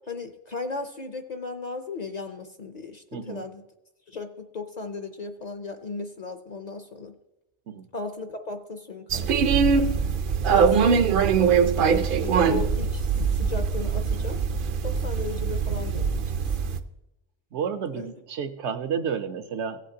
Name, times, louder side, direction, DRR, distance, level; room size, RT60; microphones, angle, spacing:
voice 1, 0.1-3.6 4.1-7.1 7.9-9.8 10.5-11.0 12.2-14.4 14.8-16.2 17.9-18.1, left 4 dB, 45° left, 7 dB, 0.6 m, -36 dB
voice 2, 3.1-3.4 7.7-7.8 17.5-19.8, right 7 dB, 75° right, 9 dB, 1.0 m, -31 dB
sound 1, 9.1-16.8, right 6 dB, 60° right, 0.6 m, -22 dB
16.0 x 8.3 x 2.8 m, 0.93 s
omnidirectional pair, 1.2 m